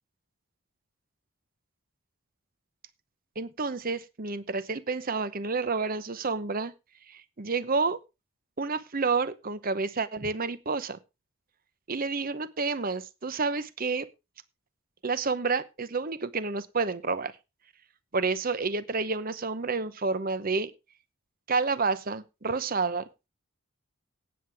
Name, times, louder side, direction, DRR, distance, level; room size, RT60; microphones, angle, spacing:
voice 1, 3.4-6.7 7.0-8.0 8.6-11.0 11.9-14.1 15.0-17.4 18.1-20.7 21.5-23.1, right 4 dB, 40° right, 15 dB, 0.8 m, -29 dB
17.5 x 7.8 x 3.5 m, 0.26 s
head